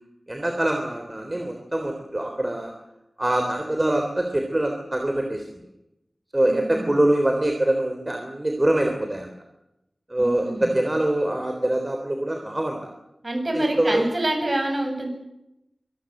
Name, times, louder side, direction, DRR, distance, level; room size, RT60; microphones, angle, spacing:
voice 1, 0.3-2.7 3.2-5.6 6.3-9.3 10.1-12.9 13.5-14.0, right 1 dB, 30° right, 4 dB, 3.5 m, -24 dB
voice 2, 6.5-6.9 10.2-10.7 13.2-15.1, right 1 dB, 45° right, 3 dB, 7.9 m, -27 dB
25.5 x 19.5 x 7.9 m, 0.87 s
wide cardioid pair, 55°, 0 cm